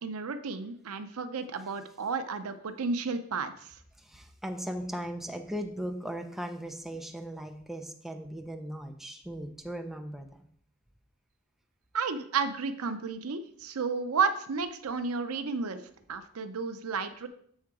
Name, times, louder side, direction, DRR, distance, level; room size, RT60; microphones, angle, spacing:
voice 1, 0.0-3.8 11.9-15.8 16.1-17.3, right 5 dB, 85° right, 10 dB, 0.6 m, -32 dB
voice 2, 4.0-10.4, equal, ahead, 3 dB, 0.5 m, -38 dB
7.3 x 3.7 x 4.7 m, 0.64 s
head